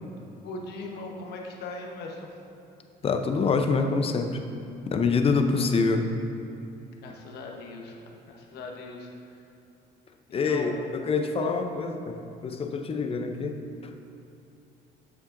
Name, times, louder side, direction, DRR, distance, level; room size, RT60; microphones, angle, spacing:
voice 1, 0.4-2.3 5.6-5.7 7.0-7.9 8.3-9.5 10.4-10.7, left 3 dB, 75° left, 0 dB, 1.1 m, -39 dB
voice 2, 3.0-4.4 4.9-6.1 10.3-13.6, left 4 dB, 35° left, 5 dB, 0.6 m, -26 dB
8.5 x 7.1 x 2.6 m, 2.7 s
cardioid pair, 110°, 17 cm